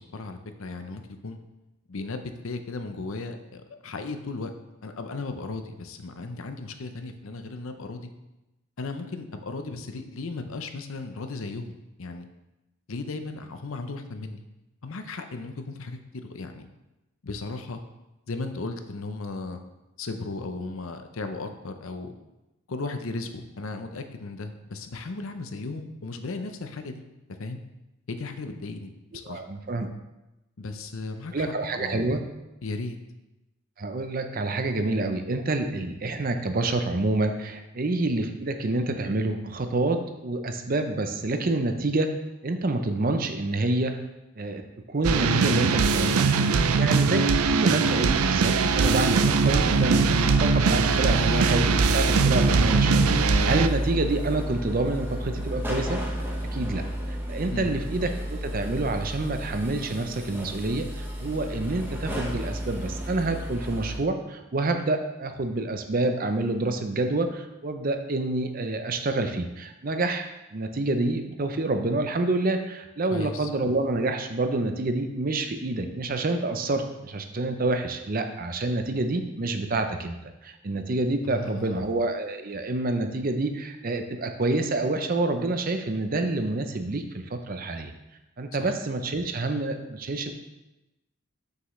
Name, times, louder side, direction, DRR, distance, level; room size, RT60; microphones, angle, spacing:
voice 1, 0.0-1.4 1.9-4.5 4.8-8.1 8.8-12.3 12.9-14.4 14.8-16.7 17.2-17.8 18.3-19.6 20.0-22.1 22.7-27.0 27.4-27.6 28.1-28.9 29.3-29.4 30.6-32.0 32.6-33.0 57.5-57.7 58.0-58.1 73.1-73.5 81.2-81.9 88.6-88.7, left 3 dB, 70° left, 7 dB, 0.7 m, -36 dB
voice 2, 29.2-29.9 31.3-32.2 33.8-42.1 42.4-43.9 44.4-44.6 44.9-56.0 56.5-87.9 88.4-90.3, right 2 dB, 40° right, 7 dB, 0.6 m, -28 dB
sound 1, 45.0-53.7, right 5 dB, 85° right, 0.4 m, -22 dB
sound 2, 48.2-64.0, equal, 10° right, 0.8 m, -31 dB
7.1 x 6.7 x 3.2 m, 0.98 s
head